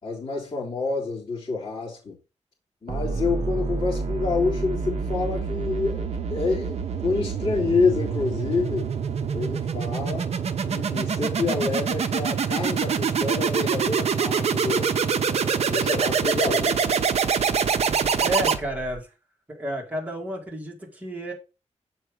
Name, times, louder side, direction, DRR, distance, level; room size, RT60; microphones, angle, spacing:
voice 1, 0.0-2.2 2.8-8.9 9.3-10.3 10.7-15.0 15.6-17.0, left 4 dB, 40° left, 3.7 m, -28 dB
sound 1, 2.9-19.0, right 6 dB, 60° right, 0.7 m, -26 dB
voice 2, 18.2-19.1 19.5-21.3, equal, 10° right, 2.1 m, -31 dB
7.4 x 4.8 x 4.8 m
wide cardioid pair, 160°, 12 cm